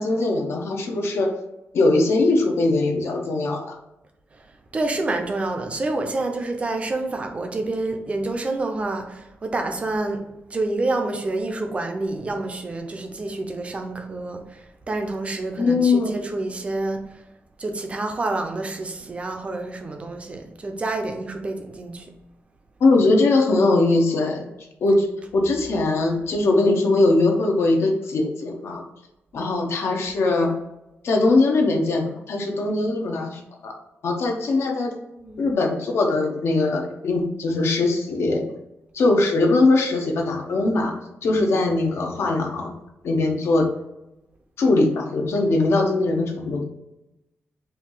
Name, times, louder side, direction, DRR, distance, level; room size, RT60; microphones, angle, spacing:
voice 1, 0.0-1.3 1.7-3.8 15.6-16.2 22.8-24.5 24.8-28.8 29.3-30.5 31.0-33.7 34.0-34.9 35.4-38.5 38.9-42.7 43.0-43.7 44.6-46.6, left 2 dB, 65° left, 0.8 m, -21 dB
voice 2, 4.7-10.2 10.5-17.0 17.6-22.1 29.4-29.5 35.2-35.4, right 2 dB, 25° right, 0.6 m, -28 dB
4.5 x 2.7 x 3.8 m
wide cardioid pair, 155°, 5 cm